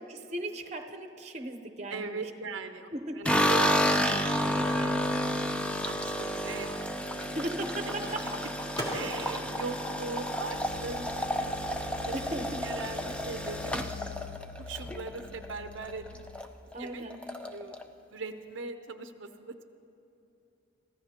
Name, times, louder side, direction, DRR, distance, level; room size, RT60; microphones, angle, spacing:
voice 1, 0.1-2.2 2.9-3.4 7.2-8.4 12.1-12.7 16.7-17.2, right 1 dB, 35° right, 6 dB, 0.8 m, -37 dB
voice 2, 1.9-2.9 3.1-5.3 5.8-6.7 7.0-7.4 7.9-8.1 8.9-12.2 12.6-16.2 16.8-19.6, right 3 dB, 70° right, 7 dB, 0.6 m, -40 dB
Microwave oven, 3.0-10.9 11.2-13.1, equal, 20° left, 2.5 m, -45 dB
sound 1, 3.2-15.5 15.8-16.5 16.7-16.8 17.1-17.8, equal, 5° left, 0.5 m, -30 dB
sound 2, 10.5-16.4, left 6 dB, 75° left, 0.5 m, -46 dB
25.0 x 14.5 x 2.9 m, 3.0 s
head